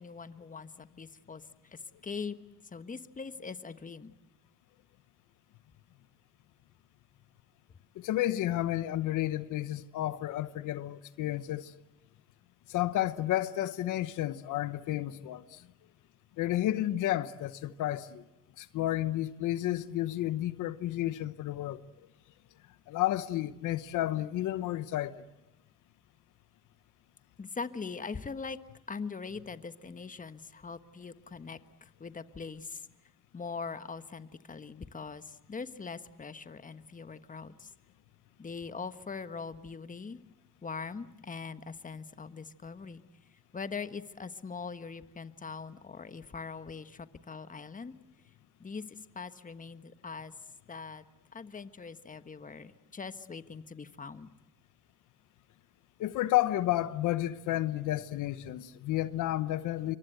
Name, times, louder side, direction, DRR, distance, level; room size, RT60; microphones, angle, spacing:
voice 1, 0.0-2.4 2.6-4.2 27.4-28.6 28.9-32.9 33.3-37.7 38.4-40.2 40.6-43.0 43.5-47.9 48.6-50.3 50.7-51.0 51.3-54.3, left 5 dB, 25° left, 1.3 m, -42 dB
voice 2, 8.0-11.7 12.7-15.6 16.4-18.2 18.6-21.8 22.9-25.2 56.0-60.0, left 14 dB, 85° left, 1.0 m, -31 dB
27.5 x 24.0 x 7.9 m
cardioid pair, 90°, 30 cm